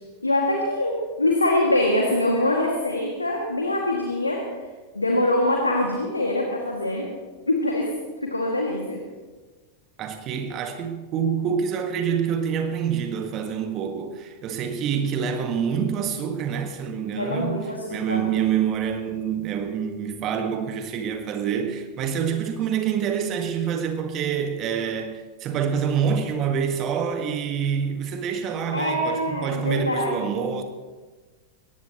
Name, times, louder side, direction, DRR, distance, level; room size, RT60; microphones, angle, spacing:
voice 1, 0.2-4.5 4.9-7.1 7.5-7.9 8.2-9.0 17.1-18.3 28.7-30.4, left 1 dB, 80° left, 2.1 m, -24 dB
voice 2, 10.0-30.6, right 7 dB, 35° right, 1.5 m, -26 dB
23.0 x 18.0 x 3.0 m
figure-of-eight pair, 90°, 0 cm